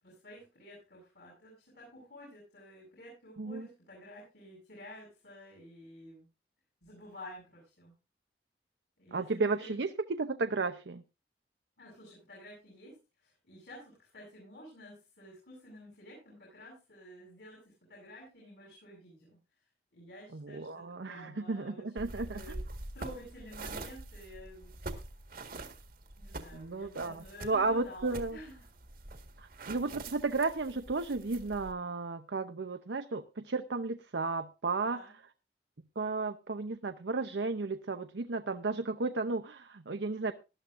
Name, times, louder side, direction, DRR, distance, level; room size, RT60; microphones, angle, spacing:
voice 1, 0.0-6.3 6.8-7.9 9.0-9.8 11.8-12.9 13.2-19.4 19.9-22.6 22.9-24.7 26.2-28.7 34.8-35.1, equal, 65° left, -3 dB, 7.7 m, -51 dB
voice 2, 9.1-11.0 20.3-22.4 26.5-28.4 29.4-35.0 36.0-40.3, right 3 dB, 80° right, 8 dB, 0.8 m, -33 dB
sound 1, 22.0-31.7, right 2 dB, 55° right, 1.7 m, -45 dB
19.0 x 12.0 x 2.6 m, 0.29 s
head